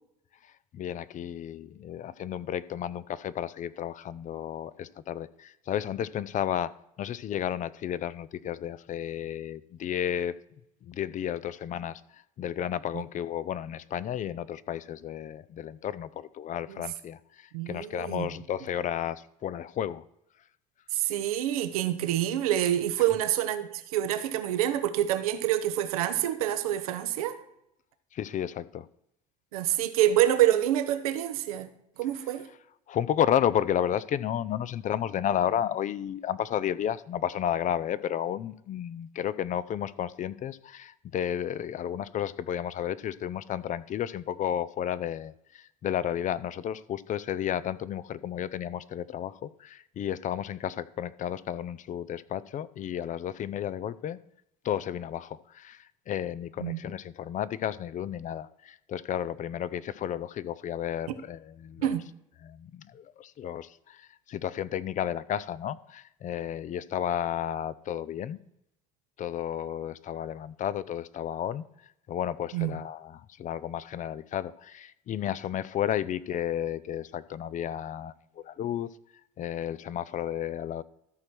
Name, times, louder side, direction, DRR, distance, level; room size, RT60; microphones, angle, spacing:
voice 1, 0.7-6.7 7.0-10.3 10.9-12.0 12.4-20.0 28.1-28.9 32.9-54.2 54.6-61.9 62.4-68.4 69.2-71.6 72.1-78.9 79.4-80.8, left 10 dB, 45° left, 0.5 m, -32 dB
voice 2, 17.5-18.3 20.9-27.4 29.5-31.7 32.0-32.5 56.6-56.8 61.8-62.0 72.5-72.7, right 12 dB, 90° right, 0.8 m, -27 dB
13.0 x 4.4 x 6.2 m
hypercardioid pair, 75°, 18 cm